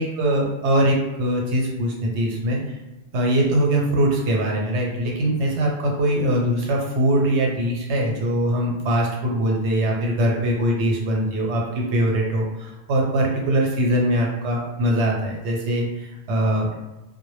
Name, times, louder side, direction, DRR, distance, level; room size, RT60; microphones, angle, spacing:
voice 1, 0.0-2.8 3.1-16.7, right 1 dB, 85° right, -1 dB, 0.9 m, -22 dB
2.1 x 2.0 x 3.1 m, 1.0 s
omnidirectional pair, 1.1 m